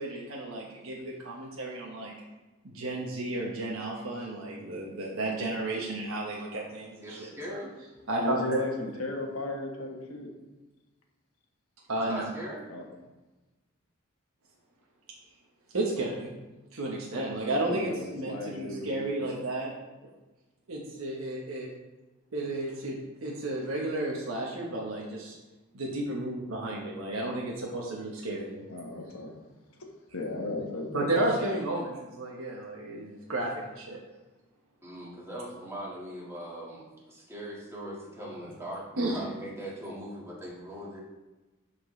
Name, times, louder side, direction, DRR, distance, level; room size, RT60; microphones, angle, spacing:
voice 1, 0.0-2.1 2.7-7.6 8.1-8.7 11.9-12.3 15.7-16.4 16.7-19.7 20.7-21.7 22.3-25.3 25.7-28.6 30.9-34.0 39.0-39.2, right 2 dB, 80° right, -3 dB, 1.2 m, -32 dB
voice 2, 7.0-7.7 12.0-12.6 34.8-41.0, equal, 15° right, -5 dB, 1.8 m, -40 dB
voice 3, 8.2-10.3 12.7-12.8 17.5-19.2 28.7-29.3 30.1-31.3, left 2 dB, 85° left, 1 dB, 1.4 m, -35 dB
12.0 x 4.4 x 3.2 m, 1.1 s
head